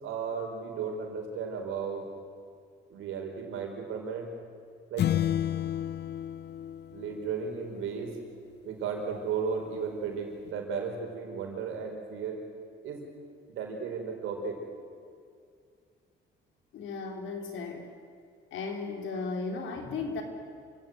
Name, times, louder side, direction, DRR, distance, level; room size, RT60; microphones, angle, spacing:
voice 1, 0.0-2.1 2.9-4.3 4.9-5.1 6.9-8.2 8.6-12.4 12.8-13.1 13.5-14.6, right 6 dB, 90° right, 2 dB, 5.0 m, -35 dB
sound 1, 5.0-7.6, left 11 dB, 60° left, 0.6 m, -31 dB
voice 2, 16.7-17.9 18.5-20.2, left 4 dB, 80° left, 4 dB, 3.8 m, -35 dB
28.0 x 17.0 x 9.6 m, 2.3 s
cardioid pair, 90°, 20 cm